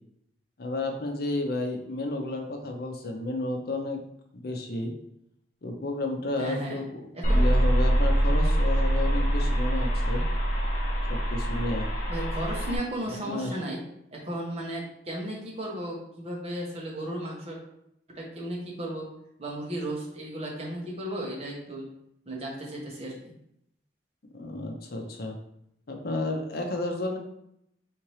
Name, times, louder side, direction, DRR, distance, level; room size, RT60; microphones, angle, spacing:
voice 1, 0.6-4.0 4.3-4.9 5.6-6.8 7.3-10.2 11.1-11.9 13.3-13.6 24.3-25.4 25.9-27.2, left 2 dB, 60° left, 3 dB, 0.7 m, -31 dB
voice 2, 6.4-6.8 7.1-7.5 12.1-13.8 14.1-17.6 18.1-19.1 19.4-21.9 22.3-23.1, right 1 dB, 35° right, -3 dB, 1.3 m, -35 dB
sound 1, 7.2-12.8, right 1 dB, 40° left, 1.2 m, -24 dB
4.4 x 3.6 x 3.1 m, 0.76 s
head